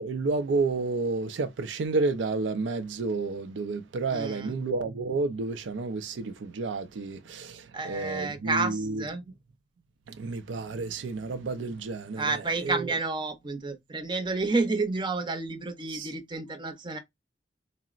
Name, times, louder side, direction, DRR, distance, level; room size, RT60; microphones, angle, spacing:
voice 1, 0.0-9.1 10.1-12.9 15.9-16.1, right 3 dB, 85° right, 0.4 m, -31 dB
voice 2, 4.1-4.6 7.7-9.2 12.1-17.0, right 3 dB, 25° right, 0.6 m, -30 dB
3.8 x 2.0 x 2.3 m
head